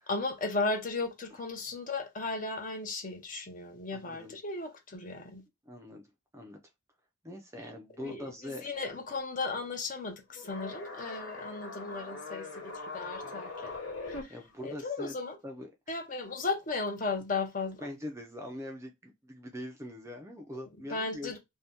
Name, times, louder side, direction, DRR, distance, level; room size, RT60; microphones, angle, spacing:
voice 1, 0.1-5.4 8.0-13.8 14.1-15.4 15.9-17.8 20.5-20.6 20.9-21.4, left 3 dB, 40° left, 0.6 m, -35 dB
voice 2, 3.9-4.4 5.7-6.0 6.3-6.6 7.2-8.7 14.3-15.2 15.4-16.0 17.8-21.4, left 1 dB, 15° right, 0.4 m, -42 dB
sound 1, 10.4-14.2, left 3 dB, 70° left, 0.9 m, -41 dB
2.7 x 2.2 x 3.4 m
head